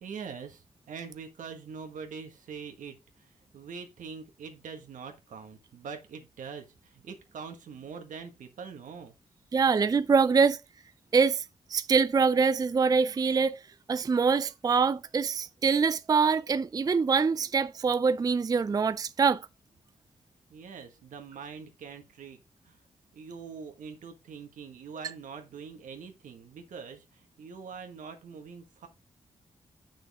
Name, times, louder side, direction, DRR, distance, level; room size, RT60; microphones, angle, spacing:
voice 1, 0.0-3.3 3.5-9.1 20.5-22.4 22.6-22.8 23.1-28.9, right 6 dB, 85° right, 1.5 m, -43 dB
voice 2, 9.5-10.6 11.1-13.6 13.9-19.5, right 5 dB, 30° right, 0.4 m, -24 dB
7.3 x 6.2 x 3.6 m
cardioid pair, 65°, 13 cm